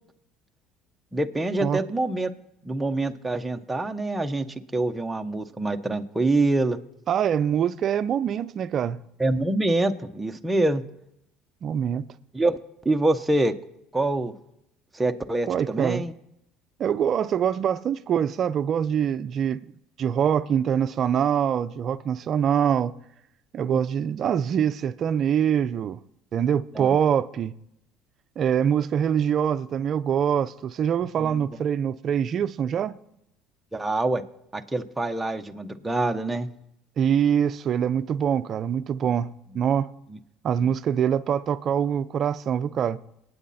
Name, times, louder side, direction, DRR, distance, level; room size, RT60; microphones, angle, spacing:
voice 1, 1.1-2.3 2.6-4.5 4.7-6.8 9.2-10.8 12.3-12.6 12.8-13.5 13.9-14.3 14.9-16.1 23.7-23.8 26.7-27.0 31.2-31.4 33.7-34.2 34.5-36.5, right 2 dB, 10° right, 1.1 m, -25 dB
voice 2, 7.1-9.0 11.6-12.0 15.5-16.0 16.8-19.7 20.0-22.9 23.5-26.0 26.3-27.5 28.4-32.9 37.0-39.9 40.4-43.0, right 8 dB, 45° right, 0.7 m, -24 dB
24.0 x 9.4 x 4.3 m
supercardioid pair, 105°, 0 cm